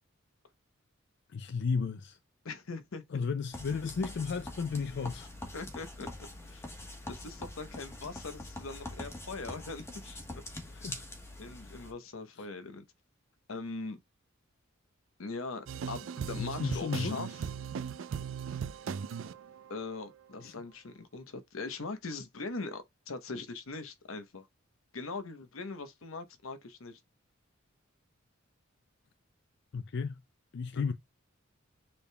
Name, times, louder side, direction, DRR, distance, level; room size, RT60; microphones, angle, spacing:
voice 1, 1.3-2.2 3.1-5.3 10.6-11.1 11.6-11.7 12.4-12.5 16.4-17.2 20.4-20.5 29.7-30.2 30.5-30.9, left 5 dB, 55° left, 0.4 m, -34 dB
voice 2, 2.4-3.0 5.5-6.1 6.4-6.6 7.1-10.4 11.4-12.8 13.5-14.0 15.2-17.3 19.7-24.5 24.9-27.0, left 3 dB, 75° left, 0.9 m, -41 dB
sound 1, 3.5-11.9, left 1 dB, 15° left, 1.1 m, -44 dB
sound 2, 15.7-20.2, right 7 dB, 65° right, 0.4 m, -38 dB
6.9 x 3.5 x 2.2 m
head